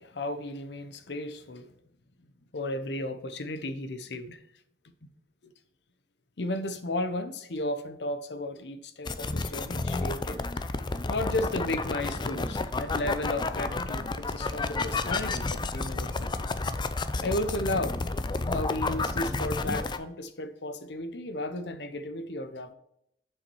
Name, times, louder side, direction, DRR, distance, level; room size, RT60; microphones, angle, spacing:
voice 1, 0.0-1.7 2.5-4.4 5.4-5.5 6.4-10.4 11.1-16.3 17.2-18.0 18.5-22.7, left 1 dB, 70° left, 0.8 m, -34 dB
sound 1, 9.1-20.0, left 3 dB, 25° left, 0.5 m, -31 dB
7.2 x 5.6 x 4.6 m
head